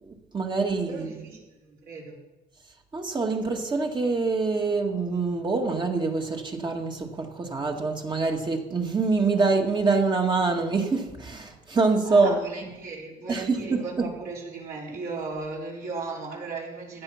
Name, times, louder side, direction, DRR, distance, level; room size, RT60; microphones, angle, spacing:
voice 1, 0.0-1.1 2.9-12.4 13.3-14.1, right 4 dB, 25° right, 2 dB, 2.0 m, -25 dB
voice 2, 0.9-2.2 12.0-17.0, right 4 dB, 60° right, -4 dB, 4.6 m, -36 dB
15.5 x 10.0 x 5.8 m, 1.1 s
cardioid pair, 110°, 17 cm